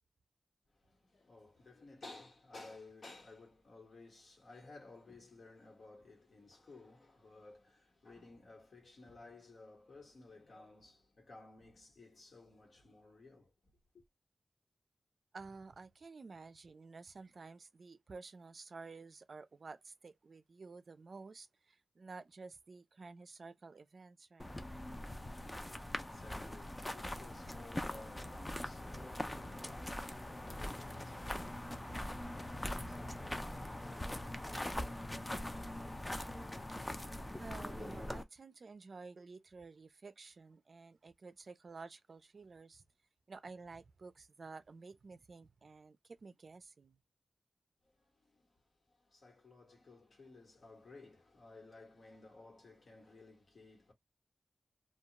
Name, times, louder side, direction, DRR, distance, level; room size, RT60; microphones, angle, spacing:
voice 1, 0.7-13.5 13.9-14.0 25.3-36.1 47.8-48.6 48.9-53.9, left 3 dB, 65° left, 1.2 m, -57 dB
voice 2, 15.3-24.6 37.4-42.8 43.3-47.0, right 4 dB, 55° right, 0.4 m, -52 dB
sound 1, 24.4-38.2, left 1 dB, 15° left, 0.4 m, -42 dB
2.3 x 2.2 x 2.8 m
wide cardioid pair, 120°, 0 cm